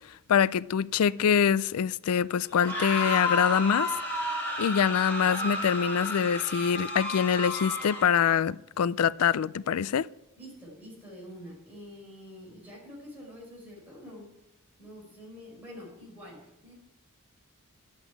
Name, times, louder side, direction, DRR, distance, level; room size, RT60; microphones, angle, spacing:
voice 1, 0.3-3.9 4.6-10.1, left 7 dB, 80° left, 20 dB, 0.4 m, -25 dB
sound 1, 2.5-8.3, left 1 dB, 10° left, 3.8 m, -32 dB
voice 2, 10.4-14.3 14.8-16.7, equal, 10° right, -5 dB, 4.9 m, -46 dB
10.5 x 8.0 x 9.2 m, 0.89 s
head